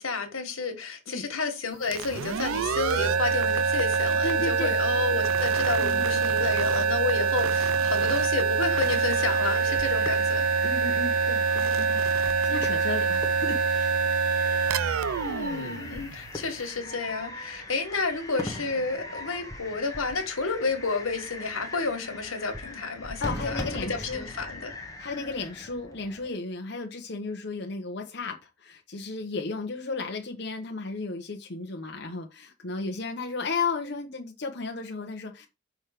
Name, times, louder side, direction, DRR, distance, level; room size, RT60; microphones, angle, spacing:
voice 1, 0.0-10.5 15.2-24.7, left 4 dB, 90° left, 1.7 m, -31 dB
sound 1, 1.8-16.5, right 5 dB, 85° right, 0.5 m, -25 dB
voice 2, 4.2-4.7 5.7-6.3 10.6-12.0 12.3-14.1 23.2-24.2 25.0-28.4 28.6-35.5, left 3 dB, 55° left, 0.9 m, -34 dB
sound 2, 8.4-10.2 10.7-12.2 12.7-13.9 14.3-16.0 16.4-17.8 18.4-19.8, right 2 dB, 65° right, 1.0 m, -47 dB
sound 3, 8.6-26.3, left 2 dB, 15° left, 1.1 m, -40 dB
6.1 x 3.4 x 5.9 m
head